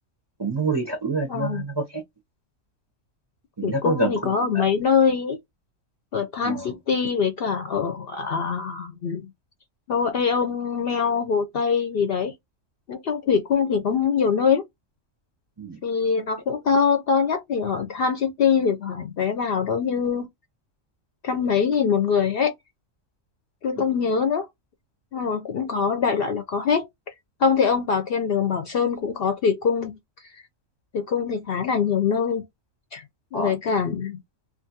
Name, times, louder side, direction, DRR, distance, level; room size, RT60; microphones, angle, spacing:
voice 1, 0.4-2.0 3.6-4.6 6.4-6.7 15.6-15.8 33.3-33.5, right 2 dB, 30° right, 0.5 m, -27 dB
voice 2, 1.3-1.6 3.6-5.4 6.1-9.3 9.9-12.3 12.9-14.6 15.8-20.3 21.2-22.5 23.6-24.5 25.1-27.1 27.4-30.0 30.3-30.4 30.9-32.4 32.9-33.0 33.3-34.2, left 6 dB, 65° left, 0.6 m, -23 dB
2.5 x 2.4 x 2.6 m
omnidirectional pair, 1.4 m